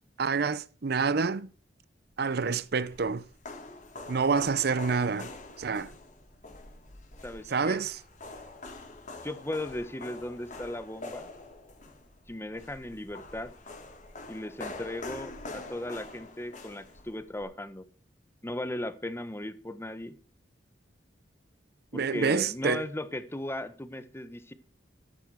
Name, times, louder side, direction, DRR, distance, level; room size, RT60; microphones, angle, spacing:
voice 1, 0.2-1.5 2.2-3.2 4.1-5.3 5.6-5.9 7.5-8.0 21.9-22.8, right 5 dB, 60° right, 0.6 m, -27 dB
sound 1, 2.4-17.4, left 2 dB, 40° left, 3.5 m, -45 dB
voice 2, 7.2-7.8 9.2-11.3 12.3-13.5 14.3-17.9 18.4-20.2 21.9-24.5, left 1 dB, 15° left, 1.2 m, -37 dB
13.5 x 10.5 x 4.8 m
head